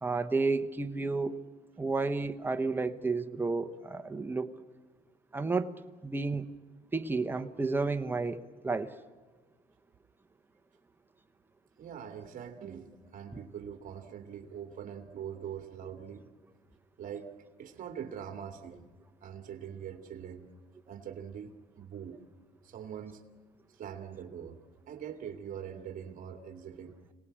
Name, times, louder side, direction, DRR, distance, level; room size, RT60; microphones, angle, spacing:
voice 1, 0.0-1.4 1.8-4.5 5.3-5.7 6.0-6.4 6.9-8.9, right 3 dB, 10° right, 7 dB, 1.2 m, -31 dB
voice 2, 11.8-16.3 17.0-17.3 17.6-18.8 19.2-20.5 20.9-22.2 22.6-23.2 23.7-24.6 24.9-27.0, right 8 dB, 50° right, 5 dB, 2.5 m, -43 dB
27.0 x 18.5 x 8.8 m, 1.3 s
cardioid pair, 110°, 17 cm